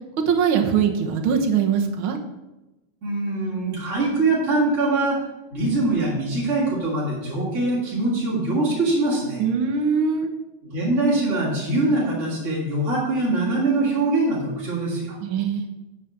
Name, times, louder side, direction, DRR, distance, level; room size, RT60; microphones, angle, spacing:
voice 1, 0.3-2.2 9.4-10.3 15.2-15.7, right 6 dB, 60° right, 3 dB, 1.5 m, -22 dB
voice 2, 3.0-5.2 5.5-9.4 10.7-15.2, right 2 dB, 25° right, -8 dB, 3.0 m, -23 dB
9.5 x 5.1 x 7.3 m, 1.0 s
omnidirectional pair, 3.3 m